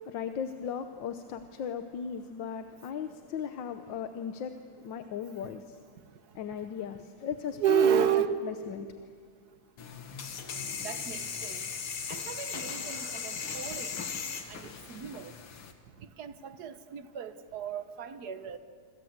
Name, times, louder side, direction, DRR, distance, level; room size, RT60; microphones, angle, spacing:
voice 1, 0.0-5.8 6.3-8.1 8.4-8.9, left 7 dB, 65° left, 8 dB, 1.6 m, -37 dB
voice 2, 7.6-8.3 10.8-11.6 12.1-13.9 14.5-14.6 14.9-15.3 16.2-18.6, right 9 dB, 55° right, 11 dB, 1.5 m, -31 dB
sound 1, 9.8-15.7, left 6 dB, 85° left, 2.7 m, -38 dB
27.0 x 26.0 x 8.0 m, 2.1 s
omnidirectional pair, 2.3 m